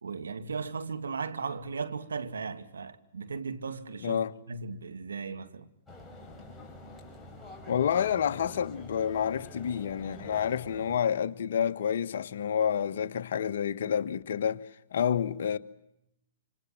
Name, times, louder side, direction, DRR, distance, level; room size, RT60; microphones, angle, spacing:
voice 1, 0.0-4.2 4.5-5.7, right 5 dB, 85° right, 2.4 m, -36 dB
voice 2, 4.0-4.3 7.7-15.6, left 8 dB, 65° left, 1.5 m, -29 dB
sound 1, 5.9-11.0, left 2 dB, 5° left, 5.5 m, -47 dB
28.0 x 26.5 x 7.7 m
hypercardioid pair, 125°, 0 cm